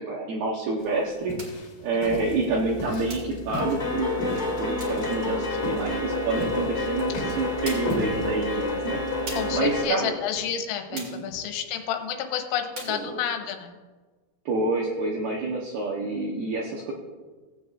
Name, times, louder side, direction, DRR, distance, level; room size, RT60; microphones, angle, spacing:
voice 1, 0.0-1.3 1.8-4.1 4.6-10.2 10.9-11.3 12.9-13.2 14.5-16.9, right 3 dB, 80° right, -3 dB, 2.3 m, -28 dB
sound 1, 0.8-8.6, left 2 dB, 50° left, 3.1 m, -37 dB
sound 2, 1.4-1.7 3.1-3.4 4.8-5.1 6.8-6.9 7.6-8.0 9.3-9.6 10.9-11.3 12.7-13.1, right 2 dB, 55° right, 1.4 m, -40 dB
sound 3, 2.3-2.7 3.0-9.8, left 2 dB, 20° left, 2.0 m, -29 dB
voice 2, 9.4-13.8, left 9 dB, 85° left, 5 dB, 3.5 m, -30 dB
18.5 x 8.3 x 2.4 m, 1.4 s
omnidirectional pair, 5.9 m